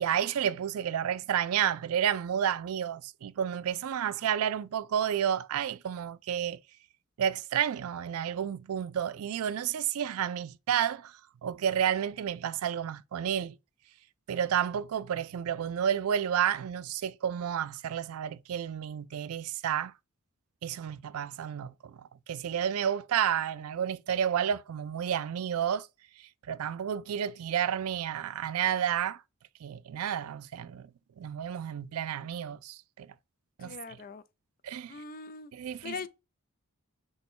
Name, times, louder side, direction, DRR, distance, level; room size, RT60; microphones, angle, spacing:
voice 1, 0.0-6.6 7.2-13.5 14.3-19.9 20.6-25.9 26.2-29.2 29.6-30.9 31.2-33.1 33.6-33.8 34.6-34.9 35.5-35.9, right 9 dB, 80° right, 0.4 m, -31 dB
voice 2, 33.6-34.2 34.9-35.5 35.8-36.1, left 5 dB, 40° left, 0.4 m, -41 dB
6.2 x 2.2 x 3.5 m
head